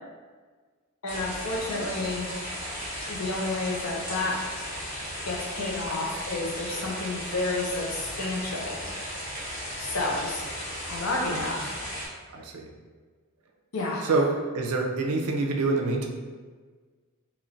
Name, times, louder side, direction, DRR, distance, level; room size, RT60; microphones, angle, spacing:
voice 1, 1.0-2.4 3.1-4.4 5.3-8.8 9.8-10.4 10.9-11.7 13.7-14.1, left 2 dB, 75° left, -2 dB, 0.7 m, -30 dB
sound 1, 1.1-12.1, equal, 35° left, 1.0 m, -36 dB
voice 2, 12.3-12.7 14.0-16.1, right 3 dB, 80° right, 2 dB, 0.5 m, -26 dB
3.1 x 3.0 x 2.5 m, 1.5 s
head